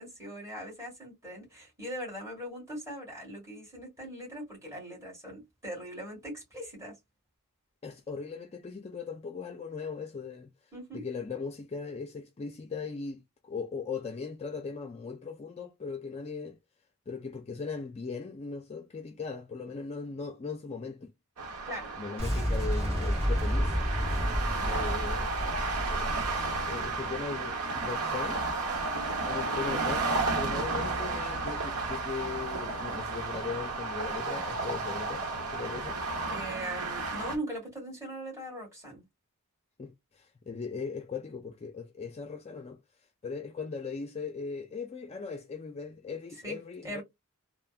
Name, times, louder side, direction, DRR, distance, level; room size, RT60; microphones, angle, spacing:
voice 1, 0.0-6.9 10.7-11.0 21.6-21.9 22.3-22.5 24.6-24.8 36.3-39.1 46.4-47.0, right 1 dB, 15° right, 1.8 m, -40 dB
voice 2, 7.8-10.5 10.9-16.6 17.1-21.1 22.0-23.8 24.6-25.3 25.9-26.3 26.7-28.4 29.2-36.0 39.8-42.8 43.2-47.0, left 4 dB, 30° left, 0.3 m, -39 dB
sound 1, 21.4-37.4, right 3 dB, 80° right, 0.9 m, -33 dB
Boom, 22.2-27.1, equal, 30° right, 1.5 m, -31 dB
3.2 x 2.1 x 2.4 m
head